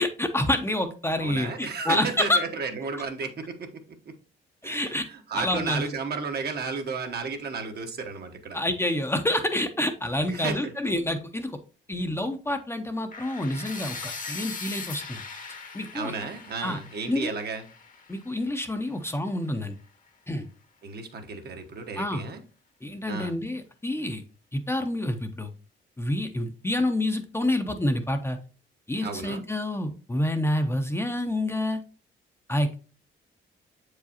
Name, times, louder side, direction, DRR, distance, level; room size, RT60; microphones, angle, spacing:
voice 1, 0.0-2.4 4.6-5.0 5.3-5.8 8.5-11.6 11.9-15.2 15.7-16.1 16.6-16.8 17.1-17.3 18.1-19.8 20.3-20.5 22.0-22.3 22.8-24.2 24.5-25.5 26.0-28.4 28.9-31.8 32.5-32.8, left 1 dB, 10° left, 6 dB, 0.6 m, -28 dB
voice 2, 1.2-3.7 4.6-8.6 10.3-10.7 15.9-17.6 20.8-22.4 23.1-23.3 29.0-29.4, right 4 dB, 55° right, 5 dB, 1.0 m, -33 dB
sound 1, 13.1-19.0, left 4 dB, 40° left, 1.0 m, -40 dB
7.3 x 4.8 x 2.8 m, 0.36 s
cardioid pair, 90°, 20 cm